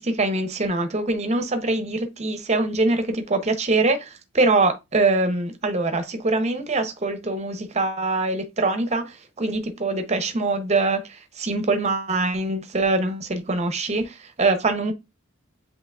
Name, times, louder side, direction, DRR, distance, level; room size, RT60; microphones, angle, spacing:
voice 1, 0.0-14.9, right 2 dB, 30° right, 0.7 m, -23 dB
7.6 x 2.9 x 2.4 m
head